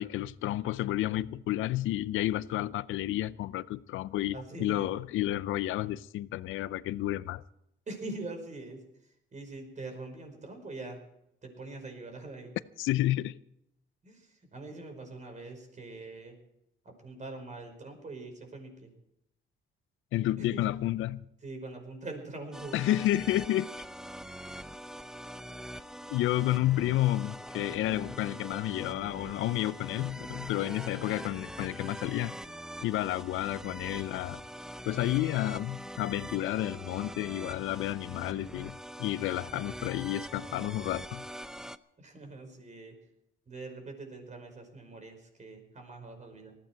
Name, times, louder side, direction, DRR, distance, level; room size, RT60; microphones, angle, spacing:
voice 1, 0.0-7.4 12.8-13.4 20.1-21.2 22.7-23.7 26.1-32.4 32.8-34.4 34.9-41.2, left 14 dB, 85° left, 0.6 m, -31 dB
voice 2, 4.3-4.9 7.9-8.8 9.3-11.0 11.4-12.5 14.0-16.4 16.8-18.9 20.4-20.6 21.4-22.8 42.0-43.0 43.5-46.6, right 2 dB, 35° right, 5.2 m, -43 dB
sound 1, 22.5-41.8, equal, 5° right, 0.6 m, -43 dB
19.5 x 15.0 x 4.6 m
cardioid pair, 90°, 20 cm